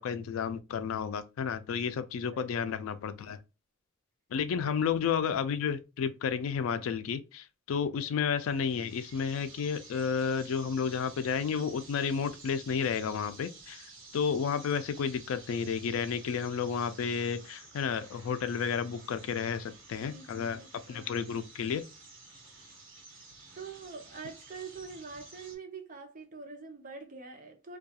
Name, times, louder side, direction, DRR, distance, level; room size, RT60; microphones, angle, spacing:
voice 1, 0.0-3.4 4.3-13.9 14.1-20.6 20.9-21.8, left 6 dB, 90° left, 0.3 m, -31 dB
voice 2, 2.3-2.7 4.6-4.7 7.9-8.0 20.0-21.2 23.6-27.8, right 4 dB, 40° right, 0.6 m, -45 dB
sound 1, 8.4-25.6, right 3 dB, 70° right, 1.1 m, -52 dB
2.3 x 2.3 x 2.7 m
head